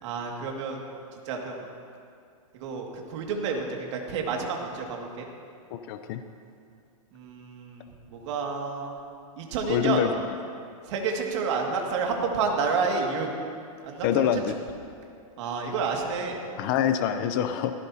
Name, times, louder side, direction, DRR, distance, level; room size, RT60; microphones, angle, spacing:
voice 1, 0.0-0.8 1.3-1.6 2.6-5.3 7.1-9.0 9.4-10.0 10.9-13.3 13.8-14.4 15.4-16.4, right 5 dB, 55° right, 1 dB, 2.1 m, -30 dB
voice 2, 5.7-6.2 9.7-10.1 14.0-14.6 16.6-17.7, left 9 dB, 40° left, 8 dB, 0.6 m, -25 dB
17.5 x 15.5 x 2.8 m, 2.4 s
supercardioid pair, 155°, 18 cm